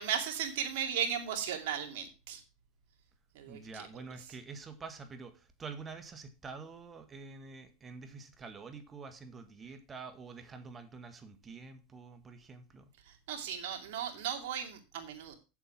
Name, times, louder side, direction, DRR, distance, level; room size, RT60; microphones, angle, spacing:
voice 1, 0.0-2.4 3.3-3.6 13.1-15.4, right 8 dB, 70° right, 2.4 m, -36 dB
voice 2, 3.5-12.9, right 4 dB, 20° right, 1.7 m, -47 dB
7.8 x 7.3 x 5.6 m
supercardioid pair, 120°, 0 cm